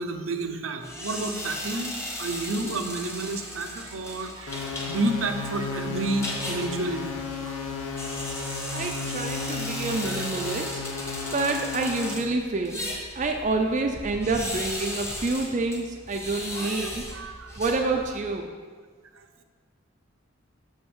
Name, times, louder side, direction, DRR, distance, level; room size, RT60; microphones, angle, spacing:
voice 1, 0.0-7.1 7.4-7.5 7.8-8.0 8.3-8.9 10.0-10.2 16.5-17.8 19.1-19.2, right 2 dB, 75° right, 6 dB, 0.7 m, -31 dB
sound 1, 0.8-18.3, left 1 dB, 15° left, 1.0 m, -37 dB
sound 2, 4.5-12.1, left 4 dB, 85° left, 1.1 m, -34 dB
voice 2, 8.7-10.9 11.3-17.1 17.6-18.5, right 3 dB, 35° right, 3 dB, 0.4 m, -28 dB
6.3 x 5.7 x 6.2 m, 1.5 s
head